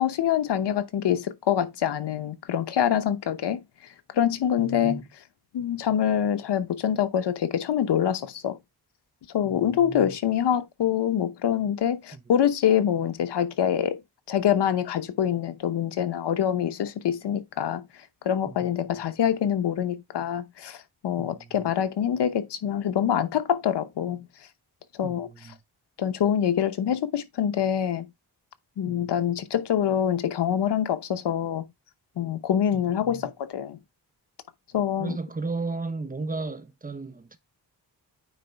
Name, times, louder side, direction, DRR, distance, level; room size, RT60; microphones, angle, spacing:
voice 1, 0.0-3.6 4.1-5.0 5.5-8.6 9.3-14.0 14.3-17.8 18.2-20.8 21.0-24.3 25.0-25.3 26.0-28.0 28.8-31.7 32.2-33.8 34.7-35.2, left 9 dB, 90° left, 0.9 m, -25 dB
voice 2, 4.6-5.1 9.4-10.1 12.1-12.2 18.5-18.7 21.2-21.7 25.0-25.6 28.9-29.3 32.7-33.3 35.0-37.4, right 3 dB, 20° right, 0.9 m, -35 dB
9.4 x 3.8 x 3.4 m
wide cardioid pair, 95°, 40 cm